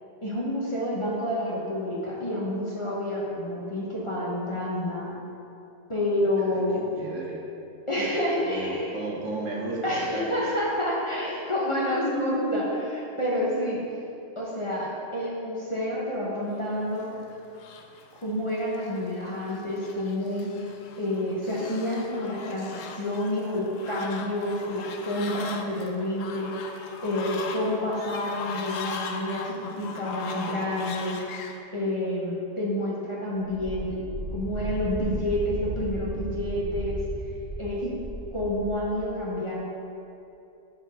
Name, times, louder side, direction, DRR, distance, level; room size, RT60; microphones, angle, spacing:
voice 1, 0.2-5.1 5.9-6.8 7.9-8.9 9.8-13.8 14.3-17.1 18.2-20.7 21.0-26.6 27.0-31.2 31.7-34.0 34.3-37.0 37.6-37.9 38.3-39.6, left 1 dB, 25° left, -6 dB, 1.0 m, -29 dB
voice 2, 6.4-7.4 8.4-10.5, right 2 dB, 70° right, -2 dB, 1.3 m, -35 dB
Fowl, 16.8-31.6, left 5 dB, 75° left, 1.0 m, -40 dB
Wind, 33.5-38.8, right 1 dB, 35° right, 0.9 m, -35 dB
10.0 x 4.5 x 3.6 m, 2.7 s
omnidirectional pair, 1.4 m